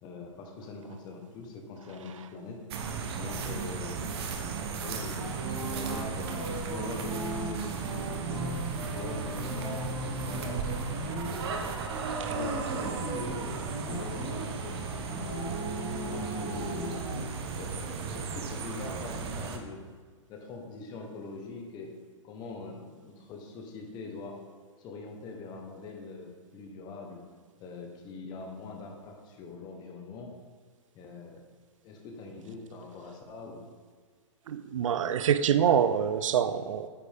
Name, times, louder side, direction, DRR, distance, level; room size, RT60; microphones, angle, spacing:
voice 1, 0.0-2.6 3.2-4.4 4.7-5.3 5.6-6.3 6.7-7.2 7.4-8.5 8.9-11.0 11.3-11.7 12.3-15.5 16.0-16.9 17.5-19.8 20.3-21.9 22.2-24.4 24.8-27.2 27.6-30.3 30.9-31.4 31.8-33.6, left 3 dB, 25° left, 2 dB, 1.1 m, -43 dB
sound 1, 2.7-19.6, right 5 dB, 50° right, 0.9 m, -35 dB
sound 2, 5.2-11.6 11.9-13.4 13.6-14.5 15.1-17.2, equal, 25° right, 2.2 m, -37 dB
voice 2, 34.5-36.9, right 8 dB, 75° right, 11 dB, 0.5 m, -26 dB
8.7 x 4.9 x 3.5 m, 1.5 s
hypercardioid pair, 145°, 17 cm